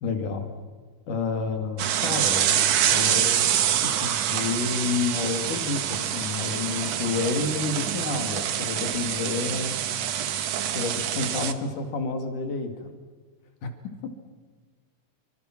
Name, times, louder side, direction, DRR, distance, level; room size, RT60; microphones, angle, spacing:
voice 1, 0.0-0.5 1.1-3.4 3.7-9.8 10.7-12.9 13.6-13.7, left 4 dB, 70° left, 6 dB, 4.0 m, -30 dB
sound 1, 1.8-11.5, right 10 dB, 60° right, 2.1 m, -26 dB
27.0 x 25.5 x 6.1 m, 1.5 s
omnidirectional pair, 3.8 m